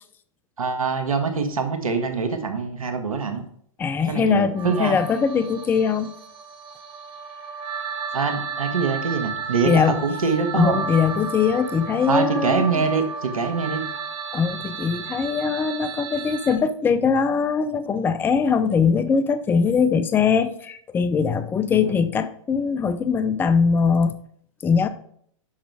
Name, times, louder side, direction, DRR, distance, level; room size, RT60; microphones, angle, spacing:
voice 1, 0.6-3.4 4.1-5.0 8.1-10.8 12.1-13.8 21.7-21.9, right 5 dB, 90° right, 6 dB, 1.3 m, -24 dB
voice 2, 3.8-6.1 9.6-10.0 10.5-12.8 14.3-24.2 24.6-24.9, left 6 dB, 10° left, 12 dB, 0.4 m, -21 dB
sound 1, 4.6-16.6, right 5 dB, 30° right, 1.1 m, -33 dB
6.3 x 5.0 x 4.6 m, 0.64 s
hypercardioid pair, 115°, 17 cm